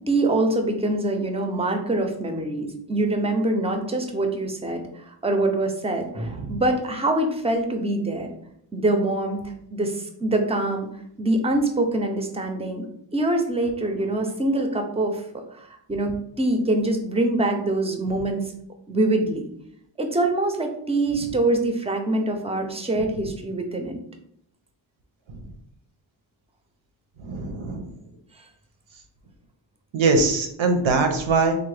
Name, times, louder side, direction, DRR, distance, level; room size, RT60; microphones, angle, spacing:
voice 1, 0.0-8.3 8.7-10.9 11.2-12.8 13.1-15.2 15.6-18.4 18.9-19.5 20.0-24.0, right 2 dB, 15° right, 4 dB, 0.4 m, -24 dB
voice 2, 27.2-27.8 29.9-31.6, right 3 dB, 85° right, 5 dB, 0.7 m, -22 dB
3.6 x 2.0 x 3.2 m, 0.72 s
wide cardioid pair, 95°, 46 cm